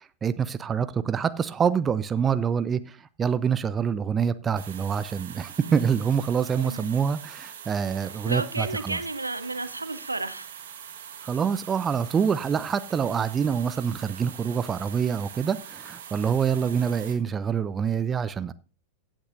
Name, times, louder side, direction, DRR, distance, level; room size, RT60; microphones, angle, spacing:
voice 1, 0.0-9.0 11.2-18.5, right 7 dB, 20° right, 0.5 m, -26 dB
sound 1, 4.6-17.2, right 8 dB, 60° right, 1.6 m, -43 dB
voice 2, 6.6-7.0 8.0-10.6 16.6-16.8, right 2 dB, 80° right, 0.8 m, -33 dB
16.0 x 8.8 x 2.6 m
figure-of-eight pair, 90°, 0 cm